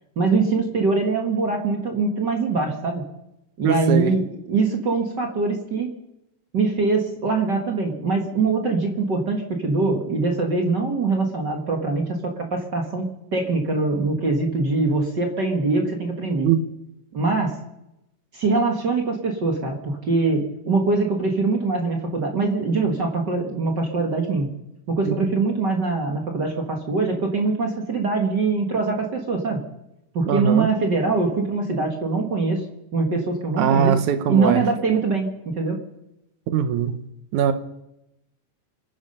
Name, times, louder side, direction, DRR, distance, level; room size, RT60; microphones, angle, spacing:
voice 1, 0.1-3.0 3.6-5.9 6.5-16.5 17.1-17.6 18.3-24.5 24.9-29.6 30.1-32.6 32.9-34.0 34.3-35.8, right 3 dB, 45° right, 2 dB, 1.6 m, -23 dB
voice 2, 3.6-4.2 16.4-16.6 25.1-25.2 30.3-30.7 33.6-34.7 36.5-37.0 37.3-37.5, right 8 dB, 70° right, 10 dB, 2.1 m, -21 dB
26.5 x 9.6 x 5.5 m, 0.87 s
omnidirectional pair, 4.0 m